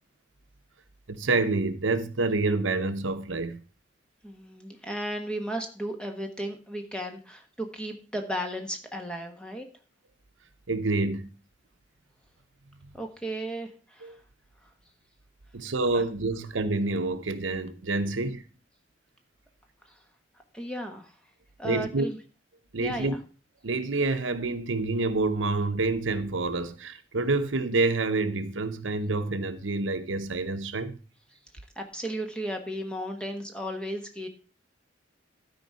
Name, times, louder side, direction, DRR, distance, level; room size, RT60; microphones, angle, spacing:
voice 1, 1.1-3.6 10.7-11.3 14.0-14.2 15.5-18.4 21.6-22.1 22.7-23.2 23.6-31.0, right 3 dB, 90° right, 0.9 m, -27 dB
voice 2, 4.2-9.6 12.9-14.1 15.9-16.0 20.5-21.1 21.6-22.2 22.8-23.2 31.7-34.3, right 1 dB, 5° left, 1.3 m, -35 dB
12.5 x 4.9 x 5.5 m
head